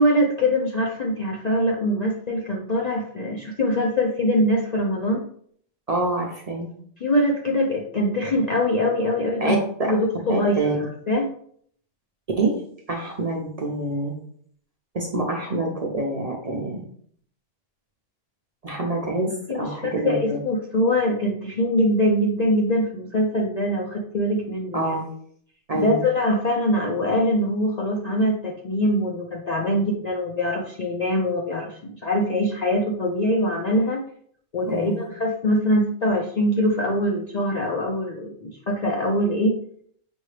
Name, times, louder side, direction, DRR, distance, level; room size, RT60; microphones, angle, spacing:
voice 1, 0.0-5.3 7.0-9.6 9.8-11.3 19.5-25.0 25.7-34.0 34.5-39.6, equal, 55° left, 0 dB, 0.5 m, -23 dB
voice 2, 5.9-6.7 9.4-9.9 10.3-10.8 12.4-12.6 12.9-14.1 14.9-16.8 18.6-20.4 24.7-25.1 25.7-26.0 34.7-35.0, right 2 dB, 40° right, 0 dB, 0.6 m, -26 dB
5.5 x 2.7 x 3.2 m, 0.62 s
omnidirectional pair, 1.2 m